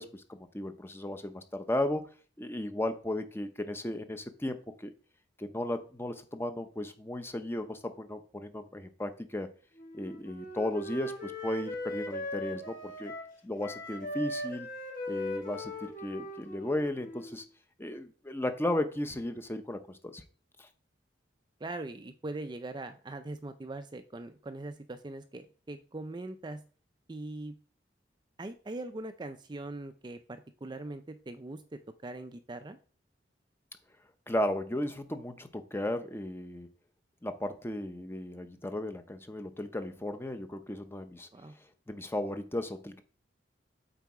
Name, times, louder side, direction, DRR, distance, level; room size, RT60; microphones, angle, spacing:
voice 1, 0.0-2.1 2.4-4.9 5.4-9.5 9.9-13.1 13.4-14.7 15.1-17.4 17.8-20.2 20.6-20.7 34.3-36.7 37.2-41.3 41.9-43.0, left 1 dB, 15° left, 8 dB, 0.7 m, -35 dB
Wind instrument woodwind instrument, 9.8-13.3 13.6-17.4, left 1 dB, 50° left, 1.7 m, -39 dB
voice 2, 21.6-26.6 27.1-27.5 28.4-32.8 41.3-41.5, right 2 dB, 25° right, 9 dB, 0.4 m, -41 dB
8.2 x 4.1 x 4.8 m, 0.40 s
head